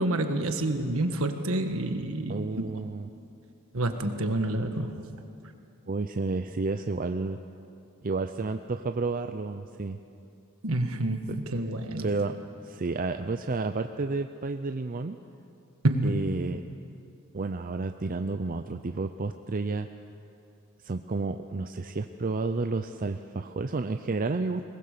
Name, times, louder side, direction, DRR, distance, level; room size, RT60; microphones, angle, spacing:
voice 1, 0.0-2.6 3.7-5.1 10.6-12.1 15.8-16.2, right 1 dB, 65° right, 6 dB, 1.6 m, -28 dB
voice 2, 2.3-3.1 5.9-7.4 8.0-10.0 12.0-12.4 12.6-15.2 16.0-16.6 17.3-19.9 20.8-24.7, right 3 dB, 40° right, 7 dB, 0.5 m, -31 dB
22.5 x 19.5 x 6.7 m, 2.6 s
head